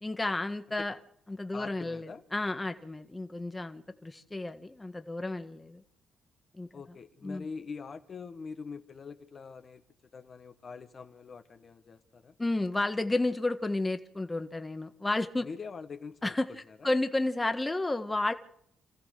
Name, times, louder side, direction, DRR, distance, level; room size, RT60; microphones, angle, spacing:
voice 1, 0.0-0.9 1.3-5.8 6.5-6.7 7.2-7.4 12.4-15.5 16.2-16.5 16.8-18.3, left 2 dB, 20° left, 8 dB, 1.6 m, -31 dB
voice 2, 1.5-2.2 6.7-9.9 10.1-12.3 15.4-16.3 16.7-16.9, left 5 dB, 50° left, 7 dB, 1.6 m, -44 dB
27.5 x 14.5 x 6.7 m, 0.73 s
supercardioid pair, 60°, 0 cm